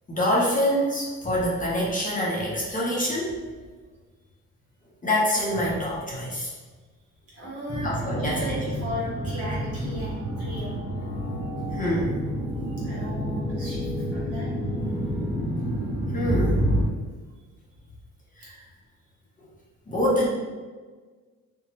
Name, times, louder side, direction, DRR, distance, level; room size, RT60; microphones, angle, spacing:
voice 1, 0.1-3.3 5.0-6.5 7.8-8.6 11.8-12.2 16.1-16.7 18.4-18.5 19.9-20.3, equal, 25° left, -5 dB, 0.8 m, -25 dB
voice 2, 7.3-10.7 12.8-14.5 18.4-18.5, left 1 dB, 50° right, -7 dB, 1.5 m, -36 dB
sound 1, 7.7-16.8, equal, 20° right, 0.8 m, -29 dB
2.6 x 2.2 x 3.0 m, 1.4 s
cardioid pair, 90°, 30 cm